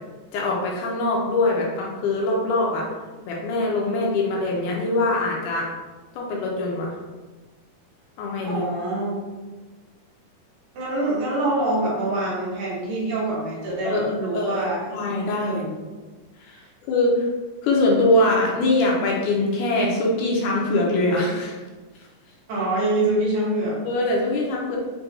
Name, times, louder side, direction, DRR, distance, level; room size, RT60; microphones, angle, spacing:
voice 1, 0.3-2.9 3.2-5.7 6.1-6.9 8.2-8.7 13.8-15.7 16.4-16.6 16.9-17.3 17.6-21.6 23.9-24.8, left 2 dB, 80° left, -2 dB, 2.1 m, -23 dB
voice 2, 8.4-9.2 10.7-14.8 15.4-15.7 22.5-23.8, right 2 dB, 70° right, -6 dB, 2.3 m, -25 dB
6.2 x 2.8 x 2.5 m, 1.3 s
omnidirectional pair, 3.8 m